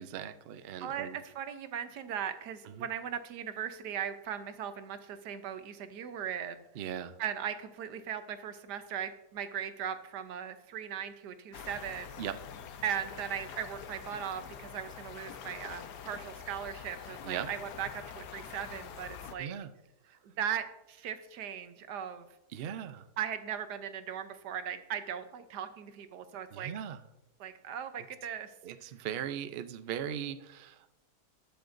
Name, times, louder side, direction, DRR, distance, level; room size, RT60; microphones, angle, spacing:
voice 1, 0.0-1.2 2.7-2.9 6.7-7.2 12.2-12.4 17.2-17.5 19.4-19.7 22.5-23.1 26.5-27.0 28.6-31.0, right 9 dB, 65° right, 10 dB, 0.5 m, -39 dB
voice 2, 0.8-6.6 7.2-12.1 12.8-19.5 20.1-22.3 23.2-26.7 27.4-28.5, right 8 dB, 80° right, 10 dB, 1.4 m, -38 dB
sound 1, 11.5-19.3, left 8 dB, 85° left, 1.3 m, -46 dB
20.0 x 6.9 x 2.6 m, 0.90 s
omnidirectional pair, 1.7 m